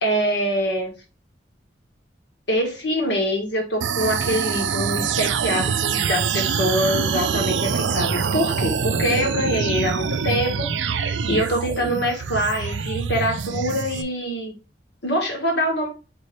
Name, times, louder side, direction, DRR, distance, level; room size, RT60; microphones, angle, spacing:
voice 1, 0.0-0.9 2.5-14.5 15.0-15.9, equal, 75° left, 2 dB, 1.5 m, -24 dB
sound 1, 3.8-14.0, right 6 dB, 85° right, 0.4 m, -25 dB
4.5 x 3.7 x 3.2 m, 0.31 s
head